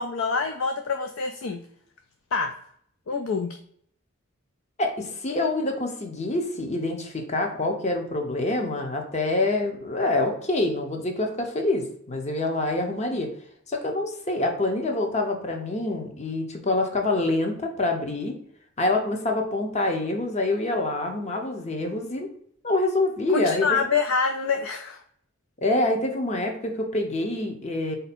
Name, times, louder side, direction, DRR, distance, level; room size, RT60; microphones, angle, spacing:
voice 1, 0.0-1.6 2.3-2.5 3.1-3.6 23.3-25.0, left 5 dB, 70° left, 6 dB, 0.4 m, -26 dB
voice 2, 4.8-13.3 13.7-18.3 18.8-22.3 22.6-23.7 25.6-28.0, left 2 dB, 35° left, 3 dB, 0.7 m, -26 dB
4.4 x 2.7 x 4.1 m, 0.64 s
head